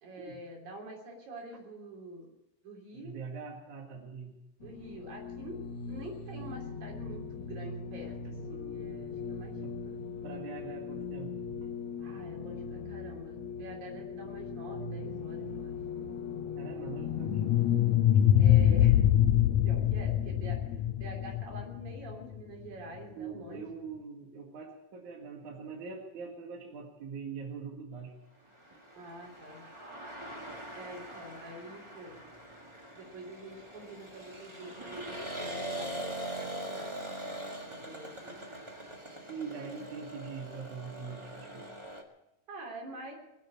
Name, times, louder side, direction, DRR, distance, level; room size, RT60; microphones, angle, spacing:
voice 1, 0.0-2.3 2.6-3.2 4.6-9.6 9.9-10.0 12.0-15.8 18.4-19.1 19.6-23.8 29.0-29.6 30.7-32.2 32.9-37.0 37.2-38.4 42.5-43.1, right 1 dB, 80° right, 1 dB, 5.1 m, -46 dB
voice 2, 2.9-4.4 9.6-9.7 10.2-11.7 16.6-17.5 23.1-28.2 28.7-28.8 39.3-41.7, right 5 dB, 60° right, 1 dB, 3.0 m, -43 dB
sound 1, 4.6-18.0, left 5 dB, 60° left, 2.5 m, -40 dB
sound 2, 17.0-22.2, left 11 dB, 85° left, 1.6 m, -24 dB
sound 3, 28.6-42.0, right 1 dB, 35° right, 0.4 m, -42 dB
22.0 x 7.7 x 8.5 m, 0.92 s
omnidirectional pair, 4.0 m